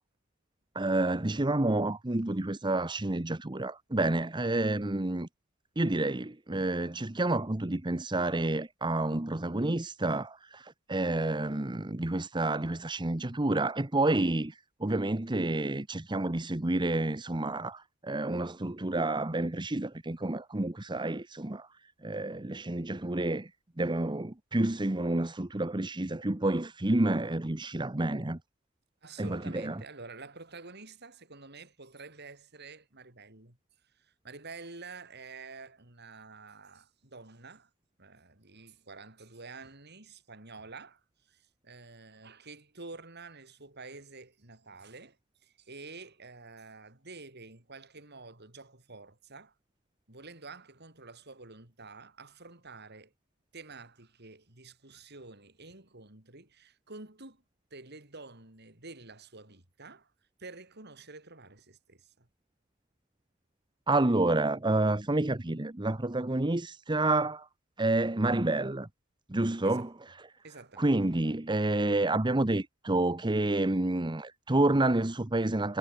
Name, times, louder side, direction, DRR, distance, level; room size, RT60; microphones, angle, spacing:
voice 1, 0.7-5.3 5.8-21.7 22.0-23.5 23.8-28.4 29.2-29.8 63.9-67.5 67.8-68.9 69.3-69.9 70.2-70.3 70.8-75.8, right 2 dB, 20° right, 1.0 m, -29 dB
voice 2, 29.0-33.6 33.8-37.7 38.0-45.2 45.4-49.5 50.1-53.1 53.5-57.4 57.7-60.1 60.4-62.3 69.6-69.9 70.4-70.9, right 3 dB, 50° right, 4.9 m, -49 dB
head